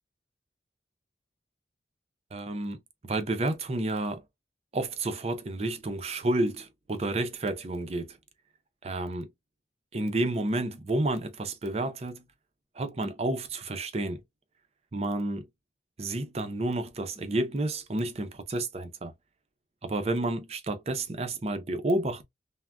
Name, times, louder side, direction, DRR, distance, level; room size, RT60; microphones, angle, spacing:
voice 1, 2.3-2.8 3.1-4.2 4.7-8.2 8.8-9.3 9.9-12.2 12.8-14.2 14.9-15.5 16.0-19.1 19.8-22.2, right 2 dB, 35° right, 0.5 m, -30 dB
3.3 x 2.1 x 2.3 m
head